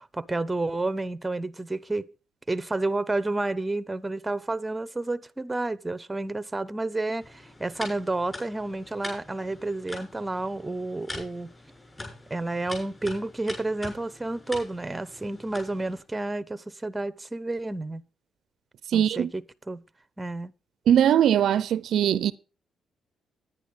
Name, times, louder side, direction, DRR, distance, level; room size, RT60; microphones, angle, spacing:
voice 1, 0.0-2.1 2.5-11.5 12.3-18.0 18.9-19.4 19.7-19.8 20.2-20.5, right 2 dB, 15° right, 0.7 m, -30 dB
sound 1, 7.2-16.0, left 2 dB, 20° left, 6.6 m, -43 dB
voice 2, 18.9-19.3 20.9-22.3, right 10 dB, 70° right, 0.5 m, -21 dB
10.5 x 10.0 x 5.0 m
cardioid pair, 90°, 0 cm